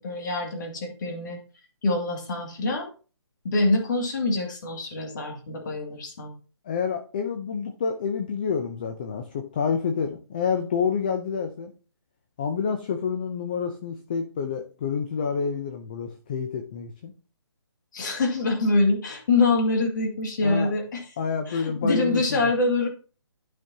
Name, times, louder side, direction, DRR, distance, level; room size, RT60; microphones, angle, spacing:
voice 1, 0.0-1.4 1.8-2.9 3.4-6.3 17.9-21.1 21.5-22.9, left 2 dB, 40° left, 2 dB, 2.3 m, -25 dB
voice 2, 6.7-11.7 12.4-17.1 20.4-20.7 21.2-22.4, left 6 dB, 20° left, 6 dB, 0.5 m, -28 dB
12.5 x 5.0 x 2.8 m, 0.36 s
hypercardioid pair, 165°, 15 cm